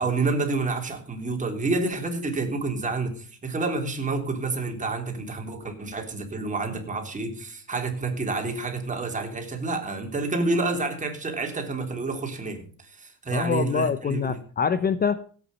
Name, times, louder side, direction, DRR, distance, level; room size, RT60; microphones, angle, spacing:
voice 1, 0.0-14.4, right 3 dB, 20° right, 3 dB, 3.4 m, -29 dB
voice 2, 13.3-15.2, left 6 dB, 25° left, 14 dB, 0.7 m, -25 dB
16.5 x 8.7 x 5.2 m, 0.43 s
cardioid pair, 125°, 37 cm